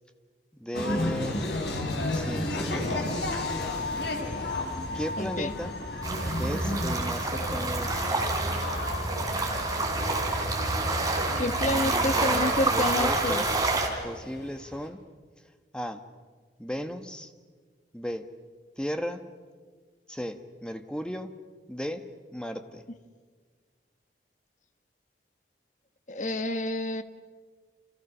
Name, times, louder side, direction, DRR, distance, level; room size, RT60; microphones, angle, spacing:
voice 1, 0.6-1.5 2.1-2.7 4.9-5.8 6.4-8.1 12.1-13.6 14.0-15.0 15.7-16.0 16.6-17.3 17.9-18.3 18.8-19.3 20.1-21.3 21.7-22.8, equal, 5° left, 7 dB, 1.3 m, -35 dB
sound 1, 0.7-14.8, left 1 dB, 75° left, 4.9 m, -33 dB
voice 2, 5.2-5.5 11.4-13.4 26.1-27.0, left 1 dB, 45° left, 10 dB, 1.3 m, -29 dB
sound 2, 6.0-13.9, right 2 dB, 20° right, 3.8 m, -28 dB
29.0 x 29.0 x 6.3 m, 1.5 s
head